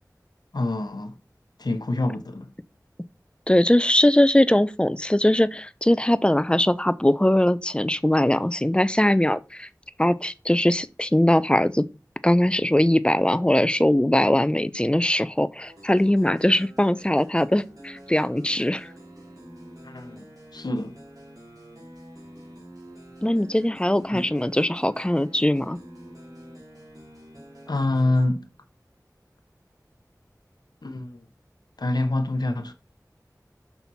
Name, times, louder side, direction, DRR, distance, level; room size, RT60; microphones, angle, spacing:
voice 1, 0.5-1.1 1.6-2.5 19.8-20.3 20.5-21.0 24.1-24.2 27.7-28.5 30.8-31.2 31.8-32.7, left 2 dB, 85° left, 0.8 m, -26 dB
voice 2, 3.5-9.7 10.0-11.8 12.2-18.9 23.2-25.8, left 1 dB, 15° left, 0.5 m, -21 dB
sound 1, 15.6-28.2, equal, 60° right, 3.3 m, -46 dB
6.2 x 5.7 x 4.1 m
wide cardioid pair, 45°, 7 cm